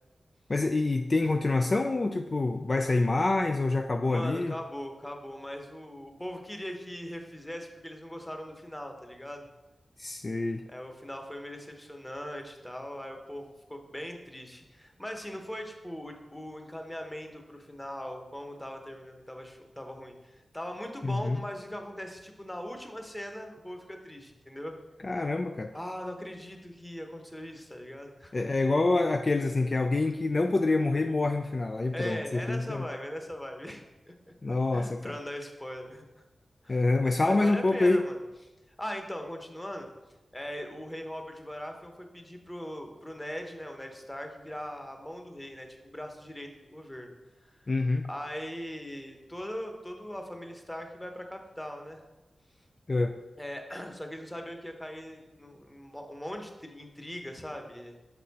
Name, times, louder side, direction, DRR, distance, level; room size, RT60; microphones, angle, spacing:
voice 1, 0.5-4.5 10.0-10.6 21.0-21.4 25.0-25.7 28.3-32.2 32.5-32.8 34.4-35.2 36.7-38.0 47.7-48.1 52.9-53.1, left 2 dB, 45° left, 5 dB, 0.3 m, -26 dB
voice 2, 4.1-9.5 10.7-24.8 25.7-28.5 31.9-34.1 34.7-36.0 36.6-36.8 37.2-38.2 38.8-39.9 40.3-47.1 47.5-47.7 48.1-52.0 53.4-58.0, equal, 15° left, 4 dB, 1.0 m, -40 dB
6.4 x 4.2 x 4.1 m, 1.1 s
cardioid pair, 50°, 0 cm